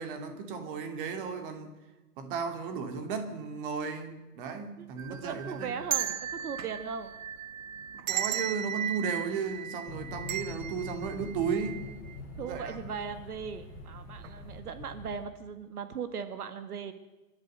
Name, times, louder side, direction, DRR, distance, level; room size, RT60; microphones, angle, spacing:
voice 1, 0.0-1.7 2.2-5.8 7.9-11.9 12.4-13.0, right 5 dB, 35° right, 6 dB, 2.6 m, -35 dB
voice 2, 4.8-7.1 12.4-16.9, right 6 dB, 75° right, 10 dB, 2.0 m, -38 dB
sound 1, 5.0-12.2 12.5-12.6 13.5-13.8 14.2-14.4, right 10 dB, 55° right, 0.9 m, -36 dB
sound 2, 9.9-15.2, left 3 dB, 15° left, 3.9 m, -44 dB
26.0 x 13.0 x 7.8 m, 1.1 s
hypercardioid pair, 160°, 46 cm